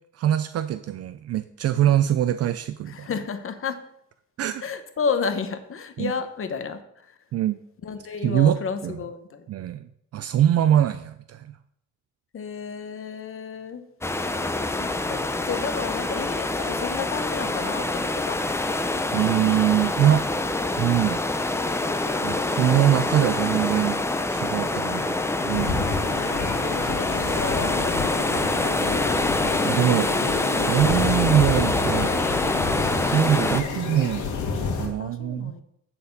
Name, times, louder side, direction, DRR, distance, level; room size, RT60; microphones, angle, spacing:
voice 1, 0.1-3.1 4.4-4.6 6.0-6.1 7.3-7.6 8.2-8.9 9.5-11.6 19.1-20.3 20.8-21.2 22.2-24.0 24.3-25.2 25.4-25.9 29.6-32.1 33.1-34.3 34.8-35.5, right 11 dB, 55° right, 12 dB, 0.4 m, -23 dB
voice 2, 2.9-3.8 4.6-7.1 7.8-9.5 12.3-13.8 14.7-18.4 24.7-25.6 26.4-28.8 35.0-35.6, left 5 dB, 45° left, 9 dB, 0.9 m, -32 dB
sound 1, 14.0-33.6, left 2 dB, 10° left, 0.6 m, -26 dB
sound 2, 25.5-34.9, left 4 dB, 80° left, 1.7 m, -29 dB
9.3 x 4.3 x 5.2 m, 0.74 s
cardioid pair, 90°, 30 cm